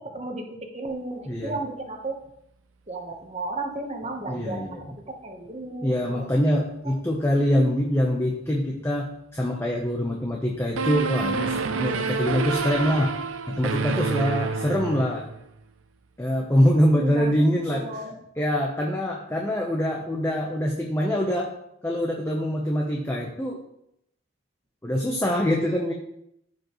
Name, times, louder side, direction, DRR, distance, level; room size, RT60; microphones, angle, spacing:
voice 1, 0.7-2.2 2.9-6.3 16.9-17.3 17.7-18.1, right 2 dB, 30° right, 3 dB, 1.1 m, -34 dB
voice 2, 1.3-1.6 4.3-4.9 5.8-13.1 13.5-15.3 16.2-18.1 18.4-21.5 21.8-23.6 24.8-25.9, equal, 10° left, -1 dB, 0.8 m, -24 dB
sound 1, 10.8-15.4, right 5 dB, 80° right, 0.7 m, -28 dB
15.0 x 5.2 x 3.1 m, 0.77 s
head